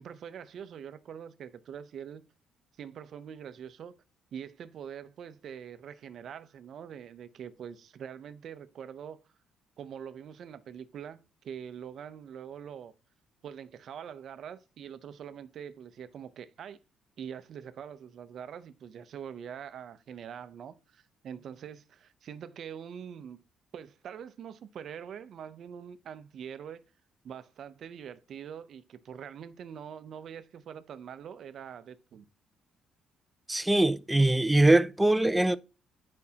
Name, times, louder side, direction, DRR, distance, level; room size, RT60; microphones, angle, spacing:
voice 1, 0.0-2.2 2.8-3.9 4.3-9.2 9.8-11.2 11.4-12.9 13.4-16.8 17.2-23.4 23.7-26.8 27.2-32.2, right 8 dB, 50° right, 0.6 m, -44 dB
voice 2, 33.5-35.6, right 2 dB, 5° right, 0.3 m, -22 dB
10.5 x 5.2 x 2.8 m
cardioid pair, 155°, 0 cm